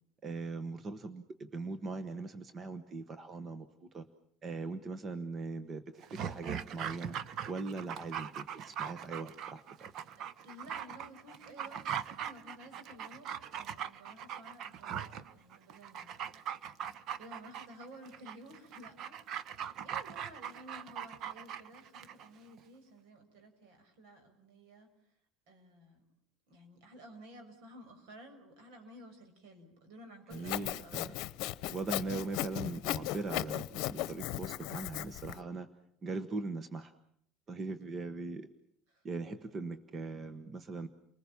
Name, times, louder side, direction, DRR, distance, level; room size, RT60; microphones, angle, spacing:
voice 1, 0.2-4.1 4.4-7.2 7.5-9.9 30.3-31.1 31.7-35.7 36.0-36.9 37.5-38.5 39.0-40.9, right 3 dB, 30° right, 11 dB, 1.2 m, -40 dB
Dog, 6.0-22.3 22.6-22.7, right 9 dB, 45° right, 1.0 m, -41 dB
voice 2, 10.2-13.3 13.5-16.3 17.2-24.9 25.5-26.0 26.5-31.2 38.9-39.0, equal, 75° right, 6 dB, 6.7 m, -54 dB
Sawing, 30.3-35.4, left 16 dB, 65° left, 0.9 m, -37 dB
29.5 x 20.0 x 7.2 m, 0.69 s
cardioid pair, 145°, 0 cm